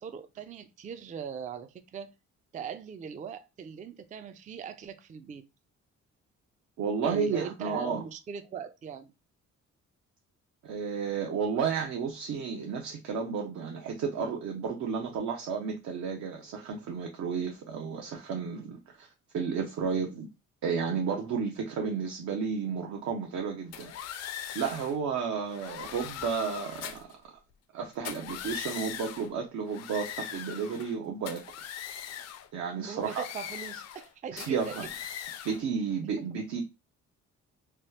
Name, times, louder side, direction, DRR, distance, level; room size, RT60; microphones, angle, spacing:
voice 1, 0.0-2.1 2.5-5.5 7.0-9.1 32.8-34.8 36.2-36.3, right 7 dB, 25° right, 0.3 m, -40 dB
voice 2, 6.8-8.0 10.6-19.1 19.3-20.3 20.6-23.9 24.5-27.1 27.7-31.7 32.1-33.3 34.3-34.9 35.4-36.6, right 6 dB, 65° right, 0.7 m, -32 dB
sound 1, 23.7-25.0 25.5-27.1 27.9-29.3 29.7-31.0 31.3-32.5 33.0-34.1 34.4-35.6, left 10 dB, 60° left, 0.4 m, -40 dB
3.0 x 2.3 x 3.1 m
cardioid pair, 90°, 30 cm